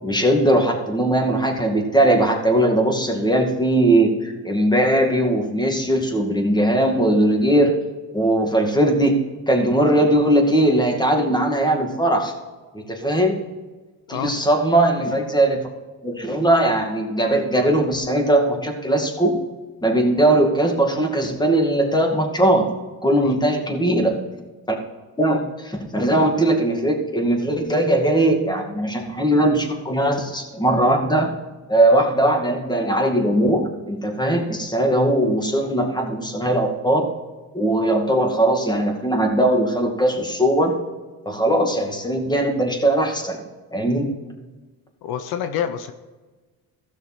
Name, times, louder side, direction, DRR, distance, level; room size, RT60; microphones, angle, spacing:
voice 1, 0.0-7.7 8.1-9.1 9.5-12.3 12.7-13.4 14.1-15.6 16.0-19.3 19.8-22.6 23.0-24.1 25.2-31.3 31.7-37.0 37.5-40.8 41.3-43.4 43.7-44.1, right 1 dB, 10° left, 2 dB, 2.3 m, -19 dB
voice 2, 23.2-23.6 45.0-45.9, left 9 dB, 80° left, 9 dB, 1.0 m, -28 dB
16.0 x 6.5 x 4.4 m, 1.3 s
cardioid pair, 105°, 36 cm